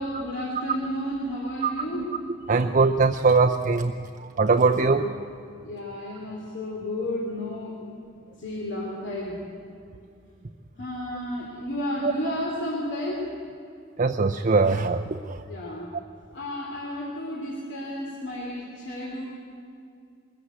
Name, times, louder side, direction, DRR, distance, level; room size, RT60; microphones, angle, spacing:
voice 1, 0.0-2.0 4.7-5.2 5.6-7.8 8.4-9.4 10.8-13.2 15.5-15.9 16.3-19.2, left 1 dB, 60° left, -3 dB, 3.3 m, -32 dB
voice 2, 1.6-2.1 2.5-3.9 4.2-5.1 12.0-12.1 14.0-15.5 15.9-16.0, right 4 dB, 40° right, 4 dB, 0.6 m, -22 dB
22.5 x 14.0 x 8.5 m, 2.4 s
head